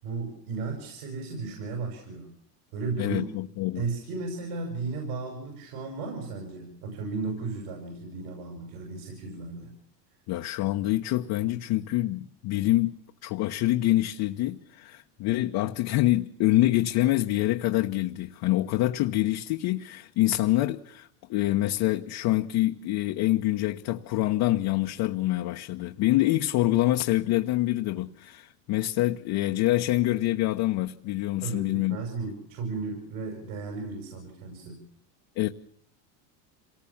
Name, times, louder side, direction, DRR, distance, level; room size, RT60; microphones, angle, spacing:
voice 1, 0.0-2.3 2.7-3.2 3.7-9.7 31.4-34.8, right 4 dB, 65° right, 6.8 m, -35 dB
voice 2, 3.0-3.8 10.3-32.0 35.4-35.5, left 16 dB, 50° left, 1.1 m, -26 dB
27.0 x 19.0 x 7.2 m
supercardioid pair, 125°, 49 cm